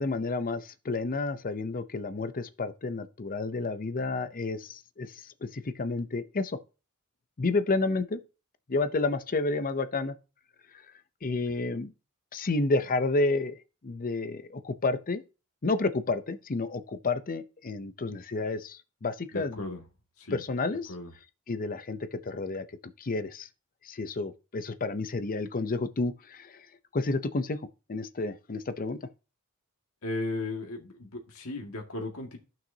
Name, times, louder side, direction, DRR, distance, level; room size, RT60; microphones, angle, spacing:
voice 1, 0.0-6.6 7.4-8.2 8.7-10.2 11.2-11.9 12.3-13.6 13.8-15.2 15.6-19.6 20.3-20.9 21.5-22.7 23.0-23.5 23.8-26.6 26.9-29.0, left 3 dB, 40° left, 0.6 m, -30 dB
voice 2, 19.3-19.8 20.2-20.4 20.9-21.1 30.0-32.4, left 2 dB, 70° left, 2.0 m, -35 dB
14.5 x 6.1 x 2.8 m
head